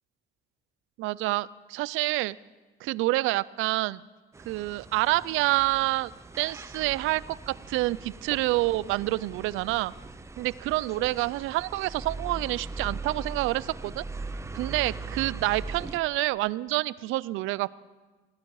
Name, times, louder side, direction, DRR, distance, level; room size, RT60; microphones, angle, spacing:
voice 1, 1.0-2.4 2.8-4.0 4.5-6.1 6.4-9.9 10.4-14.0 14.5-17.7, right 18 dB, 85° right, 20 dB, 0.5 m, -27 dB
sound 1, 4.3-16.0, right 3 dB, 15° right, 0.7 m, -40 dB
20.0 x 15.0 x 4.8 m, 1.3 s
cardioid pair, 120°, 20 cm